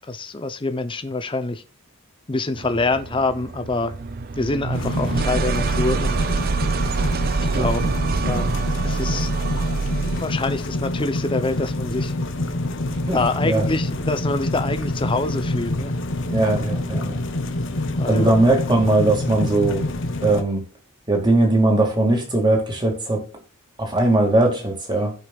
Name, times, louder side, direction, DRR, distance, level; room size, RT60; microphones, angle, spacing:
voice 1, 0.0-1.6 2.3-3.9 4.4-6.2 7.4-7.8 8.3-9.3 9.9-12.1 13.1-15.9 18.0-18.3, left 2 dB, 25° left, 0.6 m, -25 dB
Cluster in D-major, 2.6-10.4, right 4 dB, 45° right, 0.5 m, -25 dB
sound 1, 4.7-20.4, left 1 dB, 60° left, 1.0 m, -27 dB
voice 2, 16.3-17.2 18.1-19.8 20.2-20.6 21.1-23.3 23.8-25.1, right 2 dB, 20° right, 2.0 m, -19 dB
15.5 x 5.3 x 2.4 m
head